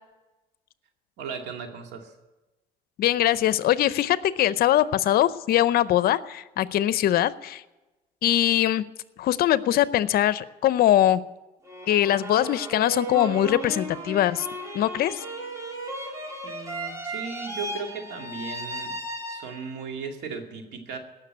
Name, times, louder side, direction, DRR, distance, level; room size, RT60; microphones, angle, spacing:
voice 1, 1.2-2.1 16.4-19.0 19.3-21.0, right 5 dB, 80° right, 4 dB, 2.4 m, -36 dB
voice 2, 3.0-7.6 8.2-8.8 9.2-11.2 11.9-14.5 14.7-15.2, left 12 dB, 65° left, 16 dB, 0.6 m, -22 dB
sound 1, 11.6-19.9, right 1 dB, 20° right, 2.6 m, -35 dB
17.5 x 6.7 x 9.5 m, 1.1 s
cardioid pair, 110°, 17 cm